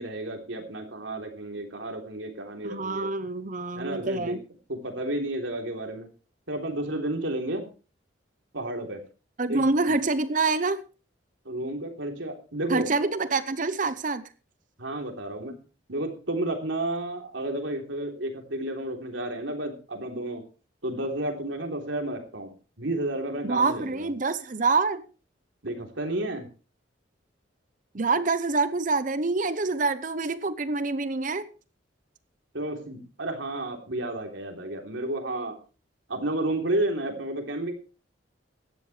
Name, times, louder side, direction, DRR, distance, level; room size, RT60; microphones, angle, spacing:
voice 1, 0.0-3.1 3.8-4.4 4.7-6.1 6.5-7.6 8.5-9.0 9.5-9.7 11.5-12.9 14.8-15.5 15.9-20.4 20.8-22.5 22.8-24.1 25.6-26.5 32.5-35.5 36.1-37.7, right 1 dB, 90° right, 3.4 m, -31 dB
voice 2, 2.6-4.4 9.4-10.8 12.7-14.2 23.4-25.0 27.9-31.5, right 3 dB, 45° right, 0.8 m, -26 dB
17.0 x 12.5 x 3.3 m
head